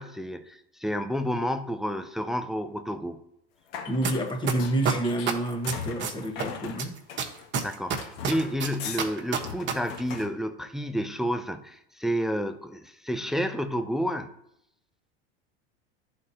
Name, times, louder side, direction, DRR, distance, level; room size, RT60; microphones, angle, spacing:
voice 1, 0.0-3.2 7.6-14.3, equal, ahead, 8 dB, 0.3 m, -30 dB
sound 1, 3.7-7.5 8.0-9.1 9.4-10.3, left 7 dB, 75° left, 1.1 m, -40 dB
voice 2, 3.9-6.9, right 1 dB, 15° left, 4 dB, 1.1 m, -28 dB
wet fart, 4.0-4.1 4.5-6.4 6.8-9.7 10.0-10.1, right 7 dB, 40° right, 1.2 m, -27 dB
11.0 x 4.2 x 2.8 m, 0.78 s
supercardioid pair, 110°, 30 cm